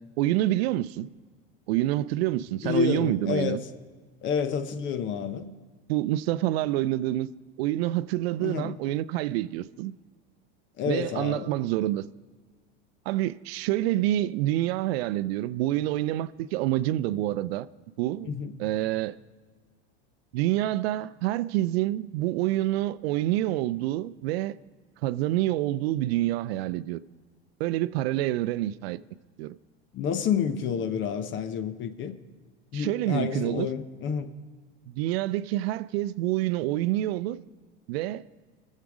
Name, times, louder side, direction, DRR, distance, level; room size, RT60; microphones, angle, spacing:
voice 1, 0.2-1.1 1.7-3.6 5.9-7.3 7.6-9.9 10.9-12.0 13.1-17.7 18.0-18.3 18.6-19.2 20.3-24.5 25.0-27.0 27.6-29.0 29.4-29.6 32.7-33.7 34.9-37.4 37.9-38.2, right 15 dB, 80° right, 0.5 m, -27 dB
voice 2, 2.6-3.6 4.2-5.5 8.4-8.8 10.8-11.5 18.3-18.5 29.9-32.2 32.7-34.3, left 7 dB, 40° left, 0.8 m, -29 dB
20.5 x 7.5 x 4.8 m
supercardioid pair, 125°, 30 cm